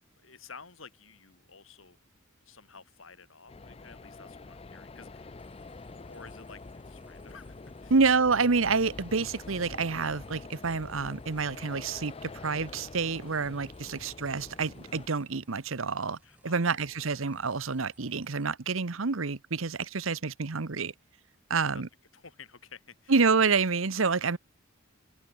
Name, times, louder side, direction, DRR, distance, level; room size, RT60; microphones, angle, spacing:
voice 1, 0.2-2.0 2.4-5.4 5.9-7.9 16.2-17.5 21.5-21.8 22.1-23.1, left 5 dB, 70° left, 3.3 m, -52 dB
sound 1, 3.5-15.1, left 3 dB, 30° left, 0.6 m, -46 dB
sound 2, 5.4-18.5, right 1 dB, 5° right, 4.3 m, -63 dB
voice 2, 7.9-16.2 16.4-20.9 21.5-21.9 23.1-24.4, right 4 dB, 75° right, 1.0 m, -28 dB
head